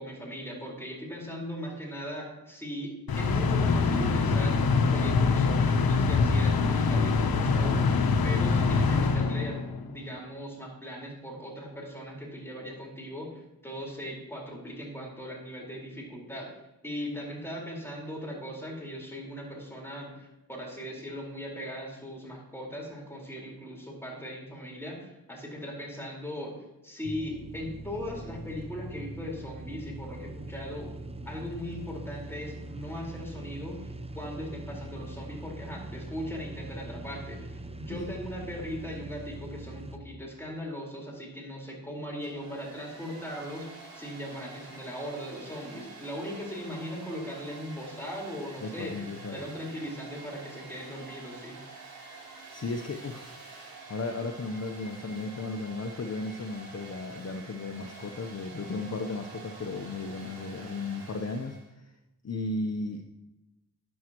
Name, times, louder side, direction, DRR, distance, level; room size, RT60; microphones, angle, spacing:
voice 1, 0.0-2.9 3.2-16.5 16.8-30.9 31.2-33.9 34.1-51.6, equal, 5° left, -3 dB, 4.5 m, -39 dB
sound 1, 3.1-9.9, left 4 dB, 80° left, 0.9 m, -24 dB
sound 2, 27.0-40.0, right 1 dB, 15° right, 0.7 m, -42 dB
Domestic sounds home sounds, 42.1-61.7, right 3 dB, 75° right, 3.5 m, -48 dB
voice 2, 48.6-49.4 52.5-61.9 62.2-63.1, left 3 dB, 45° left, 4 dB, 0.9 m, -35 dB
13.5 x 9.8 x 3.0 m, 0.97 s
wide cardioid pair, 85°, 36 cm